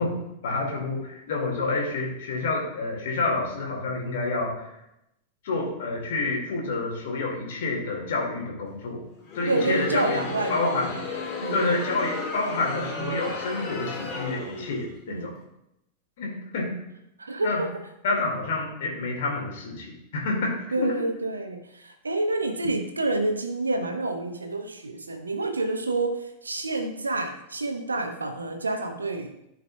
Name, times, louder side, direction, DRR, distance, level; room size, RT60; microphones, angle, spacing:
voice 1, 0.0-4.7 5.4-9.1 9.3-10.2 10.5-11.0 11.5-15.3 16.2-16.8 17.4-17.7 18.0-21.1, left 3 dB, 55° left, 0 dB, 2.2 m, -28 dB
Crowd, 9.2-14.9, left 3 dB, 30° left, 2.0 m, -34 dB
voice 2, 9.5-10.9 11.4-11.6 15.1-15.3 17.2-17.7 20.7-26.1 26.4-29.3, right 2 dB, 75° right, 5 dB, 1.0 m, -28 dB
13.5 x 5.2 x 2.3 m, 0.83 s
figure-of-eight pair, 90°, 0 cm